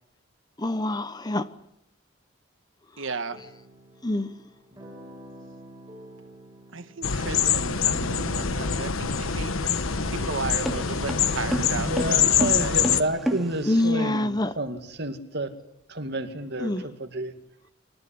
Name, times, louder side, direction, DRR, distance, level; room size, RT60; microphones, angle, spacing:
voice 1, 0.6-1.5 4.0-4.3 13.6-14.5 16.6-16.9, left 1 dB, 20° left, 0.8 m, -25 dB
voice 2, 3.0-3.4 6.7-9.5 10.1-13.1, right 4 dB, 70° right, 1.5 m, -35 dB
sound 1, 3.3-12.5, right 2 dB, 15° right, 6.7 m, -46 dB
sound 2, 7.0-13.0, left 7 dB, 85° left, 1.3 m, -25 dB
sound 3, 9.3-13.9, right 1 dB, ahead, 3.0 m, -32 dB
voice 3, 11.8-15.5 15.9-17.3, right 1 dB, 55° right, 2.3 m, -30 dB
26.5 x 14.5 x 9.9 m
head